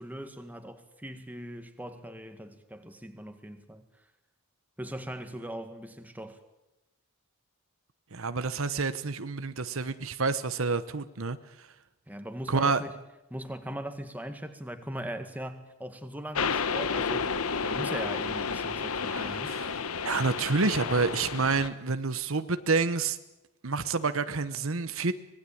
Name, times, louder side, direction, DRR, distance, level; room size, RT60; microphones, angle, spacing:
voice 1, 0.0-4.1 4.8-6.4 12.1-13.0 13.3-17.4 17.6-19.5, right 1 dB, 10° right, 7 dB, 1.9 m, -40 dB
voice 2, 8.1-11.7 12.5-12.8 19.1-19.7 20.0-23.2 23.6-25.1, right 4 dB, 70° right, 12 dB, 1.1 m, -28 dB
sound 1, 16.3-21.7, left 5 dB, 85° left, 1.1 m, -31 dB
25.0 x 19.5 x 8.7 m, 0.96 s
head